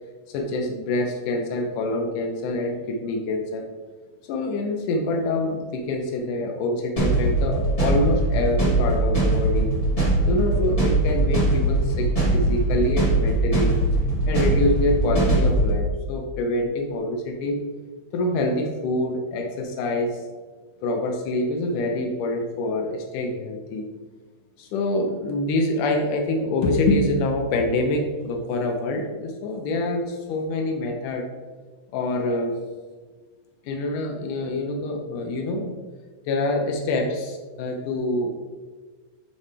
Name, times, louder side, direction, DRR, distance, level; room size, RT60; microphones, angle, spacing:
voice 1, 0.3-3.7 4.3-9.7 10.3-13.7 14.3-17.6 18.1-20.2 20.8-23.9 24.6-31.3 31.9-32.6 33.6-35.8 36.3-38.4, left 2 dB, 90° left, 3 dB, 2.3 m, -26 dB
sound 1, 7.0-15.7, right 2 dB, 65° left, 0.3 m, -21 dB
11.0 x 4.2 x 3.3 m, 1.4 s
omnidirectional pair, 3.5 m